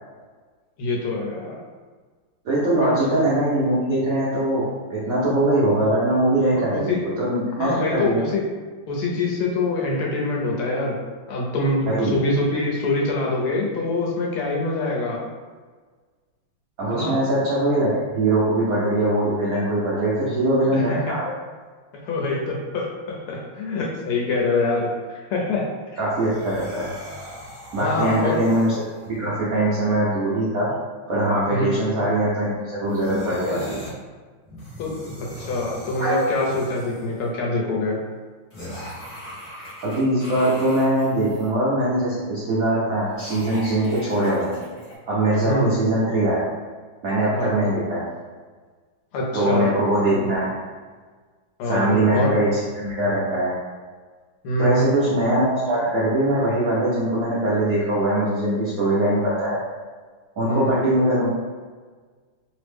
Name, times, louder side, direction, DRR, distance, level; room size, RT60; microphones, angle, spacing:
voice 1, 0.8-1.6 2.7-2.9 6.6-7.0 7.6-8.3 8.9-11.0 11.3-15.2 16.9-17.2 20.7-21.1 21.9-25.7 27.8-28.4 31.5-31.7 34.8-38.0 45.4-45.7 47.3-47.6 49.1-50.4 51.6-52.3 54.4-54.9 60.4-60.7, left 2 dB, 85° left, -1 dB, 1.6 m, -25 dB
voice 2, 2.4-8.2 11.9-12.2 16.8-21.3 26.0-26.9 27.7-28.7 29.1-30.7 31.1-32.5 32.8-33.8 35.0-35.1 36.0-36.3 39.8-44.6 45.1-46.5 47.0-48.1 49.3-50.5 51.6-53.5 54.6-59.6 60.4-61.3, right 1 dB, 80° right, -8 dB, 0.7 m, -22 dB
sound 1, 26.1-29.2 32.9-33.9 34.4-37.2 38.5-41.5 43.0-45.0, left 1 dB, 60° left, 0.3 m, -38 dB
3.6 x 2.0 x 3.2 m, 1.5 s
omnidirectional pair, 2.4 m